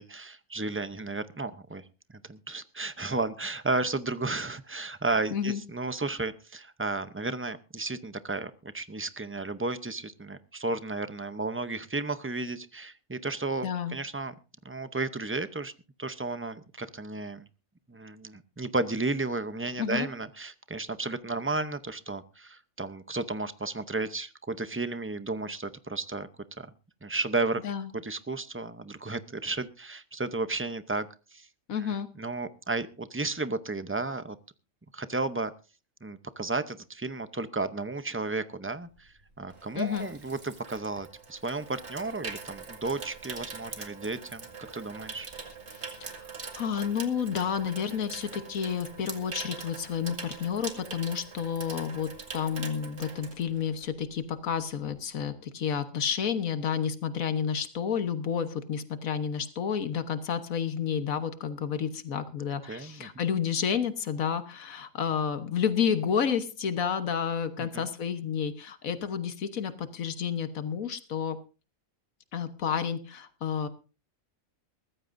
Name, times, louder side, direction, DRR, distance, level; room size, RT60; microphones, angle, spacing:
voice 1, 0.0-1.8 2.1-14.3 14.6-15.7 16.0-17.5 17.9-26.3 26.6-26.7 27.0-27.6 27.9-31.5 31.8-34.4 34.9-35.5 36.0-44.5 44.7-45.3 62.7-63.1 67.6-67.8, right 3 dB, 15° right, 12 dB, 0.5 m, -33 dB
voice 2, 13.6-14.0 19.8-20.1 27.6-27.9 31.7-32.1 39.7-40.1 45.7-71.4 72.3-73.7, left 7 dB, 85° left, 10 dB, 1.6 m, -30 dB
Water tap faucet / Sink (filling or washing), 39.0-54.0 54.3-54.6, right 4 dB, 55° right, 2.3 m, -43 dB
21.5 x 14.5 x 2.6 m, 0.33 s
omnidirectional pair, 1.4 m